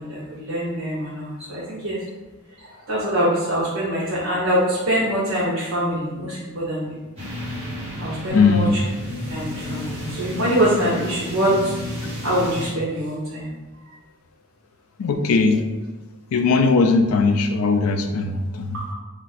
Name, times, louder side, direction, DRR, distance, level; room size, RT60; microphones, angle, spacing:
voice 1, 0.0-2.0 2.9-7.0 8.0-8.7 9.3-11.7 12.2-13.5 18.9-19.0, right 1 dB, 65° right, -8 dB, 0.7 m, -24 dB
sound 1, 7.2-12.7, left 1 dB, 25° right, 1.1 m, -31 dB
voice 2, 8.3-8.8 15.0-15.6 16.3-18.8, left 4 dB, 80° left, 6 dB, 0.4 m, -19 dB
2.4 x 2.3 x 4.0 m, 1.2 s
head